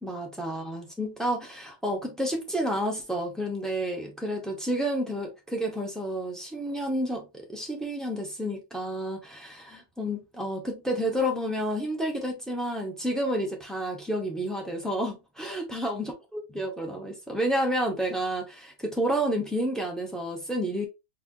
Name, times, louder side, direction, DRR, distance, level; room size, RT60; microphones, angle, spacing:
voice 1, 0.0-20.9, equal, ahead, 0.9 m, -30 dB
4.4 x 3.5 x 2.7 m
omnidirectional pair, 2.0 m